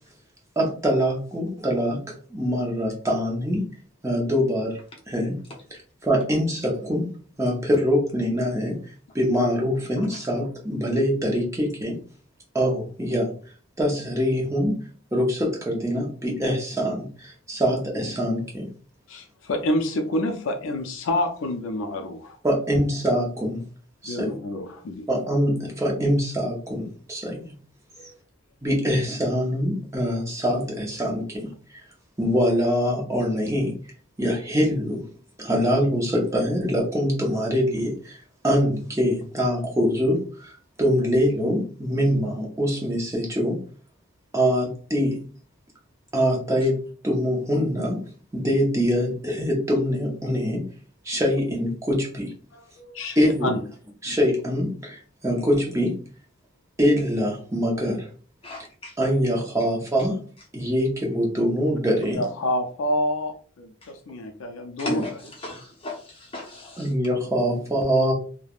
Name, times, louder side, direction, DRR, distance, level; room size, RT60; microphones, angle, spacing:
voice 1, 0.6-3.7 4.0-4.8 5.1-5.4 5.7-7.1 7.4-12.0 12.5-13.3 13.8-18.7 22.4-23.6 24.0-24.4 25.1-27.5 28.6-31.5 32.2-33.7 34.2-35.1 35.4-38.2 38.4-40.5 40.8-43.6 44.3-45.2 46.1-48.0 48.3-50.6 51.0-52.3 53.2-53.5 54.0-56.0 56.8-58.1 59.0-60.2 60.5-62.2 64.8-65.0 66.8-68.1, equal, 15° right, 0.6 m, -24 dB
voice 2, 19.1-22.4 24.0-25.1 28.0-28.1 52.5-53.6 62.0-65.0, left 1 dB, 60° left, 0.4 m, -28 dB
voice 3, 58.4-59.0 63.8-63.9 64.8-65.1 65.4-66.9, left 2 dB, 25° left, 0.7 m, -36 dB
3.2 x 2.1 x 2.4 m
head